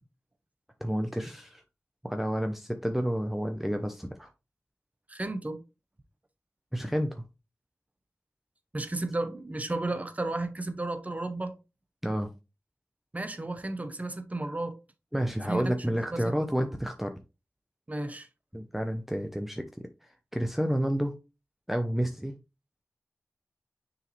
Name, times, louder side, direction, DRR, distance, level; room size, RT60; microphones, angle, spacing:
voice 1, 0.8-1.6 2.0-4.3 6.7-7.2 12.0-12.3 15.1-17.1 18.5-21.2 21.7-22.3, equal, 5° right, 0.7 m, -30 dB
voice 2, 5.1-5.6 8.7-11.5 13.1-14.8 15.4-15.7 16.1-16.6 17.9-18.3, right 2 dB, 30° right, 1.0 m, -33 dB
6.2 x 5.0 x 3.2 m
wide cardioid pair, 65°, 5 cm